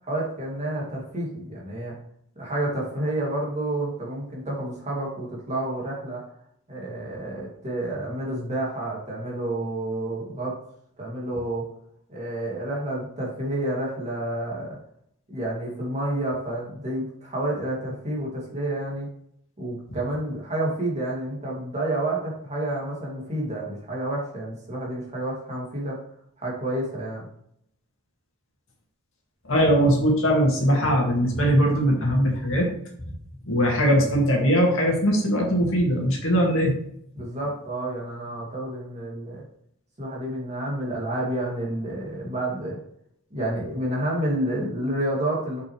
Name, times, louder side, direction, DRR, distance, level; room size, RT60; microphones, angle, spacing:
voice 1, 0.1-2.0 2.4-6.2 6.7-10.6 11.0-11.7 12.1-14.8 15.3-19.1 19.6-26.0 26.4-27.3 37.1-39.4 40.0-42.8 43.3-45.6, right 1 dB, 30° right, -4 dB, 2.6 m, -29 dB
voice 2, 29.4-32.7 33.5-36.7, equal, 65° left, -1 dB, 2.1 m, -20 dB
6.8 x 6.3 x 3.3 m, 0.70 s
head